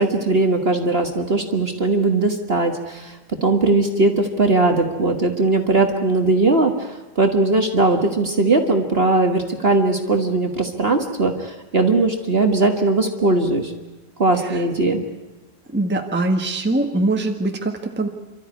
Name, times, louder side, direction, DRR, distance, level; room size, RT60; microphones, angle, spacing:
voice 1, 0.0-13.7 14.2-15.0, right 2 dB, 35° right, 4 dB, 1.7 m, -19 dB
voice 2, 15.7-18.1, right 2 dB, 5° right, 4 dB, 1.4 m, -22 dB
28.5 x 13.0 x 9.7 m, 1.1 s
omnidirectional pair, 2.0 m